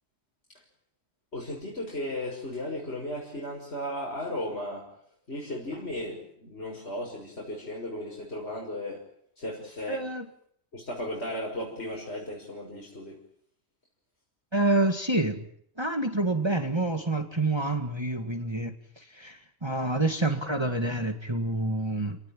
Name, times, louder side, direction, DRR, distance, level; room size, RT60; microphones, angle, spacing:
voice 1, 1.3-4.9 5.3-9.0 9.4-10.0 10.7-13.2, left 1 dB, 55° left, -2 dB, 6.7 m, -35 dB
voice 2, 9.9-10.3 14.5-15.4 15.8-22.2, right 2 dB, 20° right, 6 dB, 2.0 m, -28 dB
29.0 x 19.0 x 8.9 m, 0.66 s
omnidirectional pair, 1.3 m